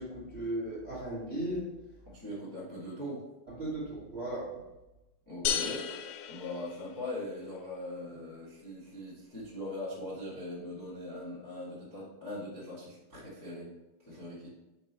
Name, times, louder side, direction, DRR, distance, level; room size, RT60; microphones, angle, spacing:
voice 1, 0.0-1.7 3.6-4.5, right 1 dB, 30° right, -9 dB, 1.2 m, -36 dB
voice 2, 2.0-3.2 5.2-5.9 6.3-13.7 14.0-14.5, left 1 dB, 10° left, -8 dB, 1.0 m, -41 dB
sound 1, 5.5-7.3, left 8 dB, 85° left, 2.0 m, -34 dB
5.7 x 4.7 x 4.4 m, 1.0 s
omnidirectional pair, 4.7 m